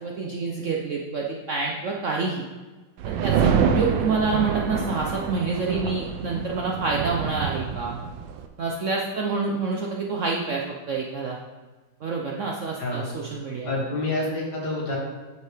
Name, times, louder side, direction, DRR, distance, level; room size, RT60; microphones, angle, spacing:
voice 1, 0.0-2.4 3.0-8.0 8.6-11.4 12.0-13.8, right 4 dB, 60° right, -1 dB, 0.8 m, -27 dB
sound 1, 3.0-8.5, right 6 dB, 85° right, 1.4 m, -26 dB
voice 2, 13.7-15.0, left 2 dB, 60° left, -2 dB, 2.1 m, -27 dB
9.6 x 5.5 x 3.4 m, 1.3 s
omnidirectional pair, 2.0 m